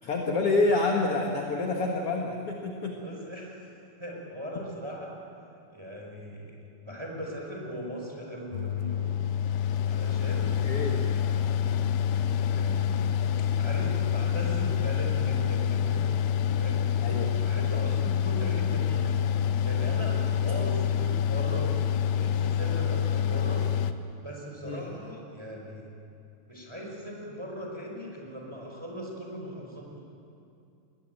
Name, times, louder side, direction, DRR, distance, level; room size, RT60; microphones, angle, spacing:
voice 1, 0.0-3.0 10.6-11.0 17.0-17.3 24.6-24.8, left 3 dB, 55° left, 1 dB, 1.7 m, -27 dB
voice 2, 2.9-5.1 5.7-6.6 6.8-9.2 9.8-11.3 12.5-13.1 13.6-16.1 16.5-16.8 17.4-19.2 19.6-23.8 24.2-25.9 26.5-30.0, equal, 5° right, -1 dB, 4.2 m, -39 dB
Mechanical fan, 8.5-23.9, left 8 dB, 80° left, 2.6 m, -27 dB
21.0 x 20.5 x 9.1 m, 2.6 s
omnidirectional pair, 4.9 m